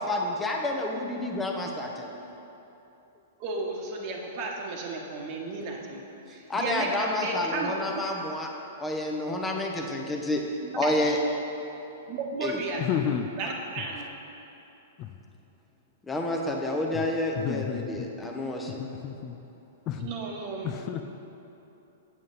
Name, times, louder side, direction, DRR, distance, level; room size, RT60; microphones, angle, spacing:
voice 1, 0.0-2.1 6.5-8.5 8.8-10.4 10.7-11.2 12.4-12.6 16.0-18.8, left 1 dB, 10° left, 0 dB, 0.9 m, -29 dB
voice 2, 3.4-8.0 10.6-10.9 12.1-12.9 13.4-14.1 20.0-21.0, right 3 dB, 45° right, 0 dB, 1.2 m, -34 dB
voice 3, 12.8-13.3 15.0-15.1 17.4-18.1 18.8-19.4 19.9-20.1 20.6-21.0, left 9 dB, 35° left, 6 dB, 0.4 m, -31 dB
7.7 x 7.5 x 4.0 m, 2.9 s
figure-of-eight pair, 110°, 0 cm